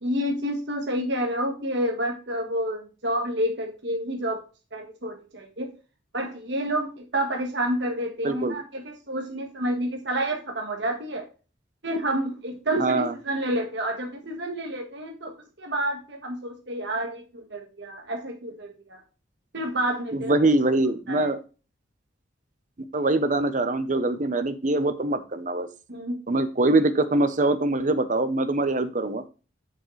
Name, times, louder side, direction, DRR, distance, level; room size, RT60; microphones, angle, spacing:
voice 1, 0.0-4.4 4.7-5.7 6.1-11.3 11.8-19.0 19.5-20.5 21.1-21.3 25.9-26.2, right 1 dB, 60° right, 2 dB, 1.5 m, -29 dB
voice 2, 8.2-8.6 12.8-13.1 20.1-21.4 22.9-25.7 26.3-29.2, right 2 dB, 40° right, 11 dB, 0.8 m, -23 dB
6.6 x 6.4 x 3.2 m, 0.33 s
head